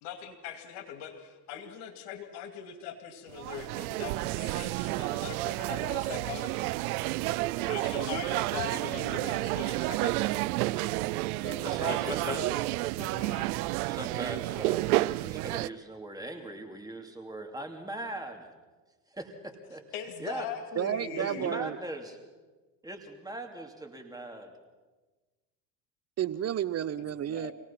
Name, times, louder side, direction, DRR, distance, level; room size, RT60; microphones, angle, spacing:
voice 1, 0.0-6.7 7.6-10.2 11.4-12.5 13.0-13.5 19.9-21.6 27.3-27.5, left 8 dB, 70° left, 7 dB, 2.6 m, -41 dB
sound 1, 3.4-15.7, right 19 dB, 90° right, 0.6 m, -30 dB
voice 2, 11.6-12.5 13.9-18.5 19.1-19.8 20.2-20.5 21.2-22.1 22.8-24.5, right 1 dB, 10° right, 3 dB, 2.7 m, -40 dB
voice 3, 20.8-21.8 26.2-27.5, right 10 dB, 35° right, 18 dB, 0.7 m, -31 dB
26.5 x 18.0 x 5.8 m, 1.3 s
supercardioid pair, 90°, 42 cm